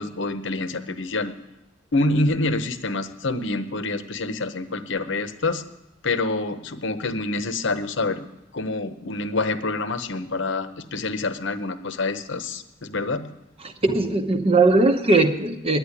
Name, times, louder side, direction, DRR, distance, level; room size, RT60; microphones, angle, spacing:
voice 1, 0.0-1.3 1.9-5.6 6.0-8.2 8.5-13.3, left 2 dB, 70° left, 10 dB, 0.9 m, -26 dB
voice 2, 13.8-15.8, right 2 dB, 30° right, 4 dB, 0.9 m, -19 dB
9.9 x 9.5 x 9.8 m, 0.98 s
head